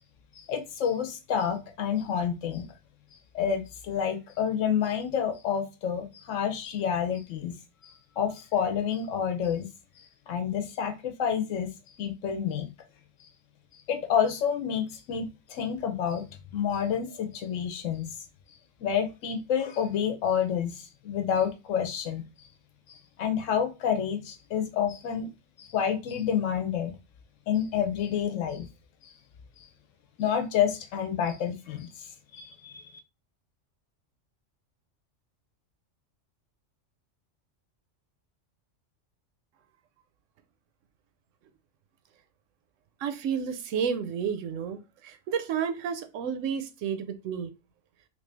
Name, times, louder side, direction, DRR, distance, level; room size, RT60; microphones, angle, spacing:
voice 1, 0.4-2.7 3.3-7.5 7.8-9.7 10.3-11.7 12.0-12.7 13.9-16.3 16.5-18.1 18.8-22.2 23.2-25.3 25.6-27.0 27.5-28.7 29.6-29.7 30.2-32.1 32.3-32.9, left 8 dB, 80° left, 1.0 m, -29 dB
voice 2, 43.0-47.5, right 7 dB, 85° right, 0.9 m, -31 dB
3.2 x 2.6 x 3.3 m
omnidirectional pair, 1.3 m